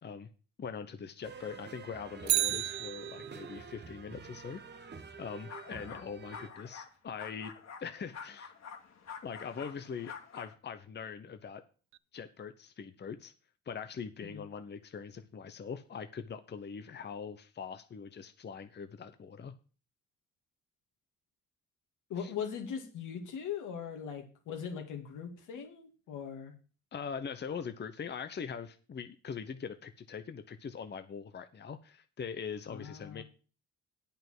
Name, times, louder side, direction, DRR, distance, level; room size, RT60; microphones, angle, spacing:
voice 1, 0.6-4.6 4.9-7.5 7.8-8.5 9.2-11.6 12.1-13.3 13.7-19.5 22.2-22.3 26.9-33.2, left 6 dB, 35° left, 9 dB, 0.9 m, -42 dB
sound 1, 1.2-6.5, right 5 dB, 35° right, 1.4 m, -48 dB
Bicycle, 2.2-3.6 11.9-12.0, right 14 dB, 65° right, 0.6 m, -32 dB
sound 2, 5.5-6.0 6.3-6.9 7.2-10.5, left 6 dB, 60° left, 2.6 m, -47 dB
voice 2, 22.1-26.5 32.7-33.2, left 7 dB, 85° left, 3 dB, 2.5 m, -40 dB
8.6 x 5.7 x 7.7 m, 0.37 s
cardioid pair, 90°, 30 cm